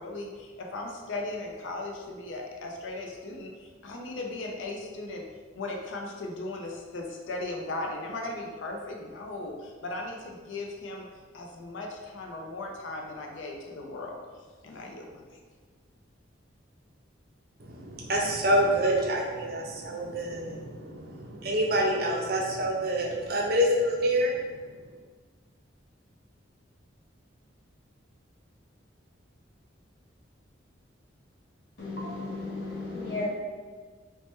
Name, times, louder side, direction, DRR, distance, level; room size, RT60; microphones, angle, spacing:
voice 1, 0.0-5.2 5.5-11.1 11.3-14.2 14.6-15.2, left 2 dB, 85° left, 1 dB, 0.4 m, -37 dB
voice 2, 17.6-24.7, equal, 50° right, -1 dB, 0.5 m, -27 dB
voice 3, 31.8-33.3, left 3 dB, 55° left, -5 dB, 0.8 m, -34 dB
3.2 x 2.1 x 2.9 m, 1.5 s
head